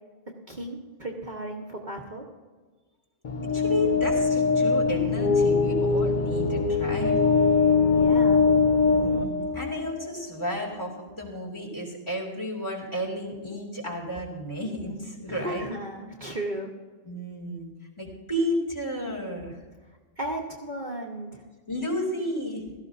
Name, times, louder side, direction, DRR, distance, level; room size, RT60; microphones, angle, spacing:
voice 1, 0.5-2.2 7.9-8.4 15.3-16.7 20.2-21.4, right 1 dB, 40° right, -1 dB, 1.3 m, -35 dB
sound 1, 3.2-10.2, left 4 dB, 45° left, 0.8 m, -22 dB
voice 2, 3.5-7.2 8.9-15.7 17.0-17.7 18.0-19.6 21.7-22.7, equal, 20° left, -3 dB, 2.6 m, -32 dB
17.0 x 14.0 x 2.6 m, 1.4 s
omnidirectional pair, 1.3 m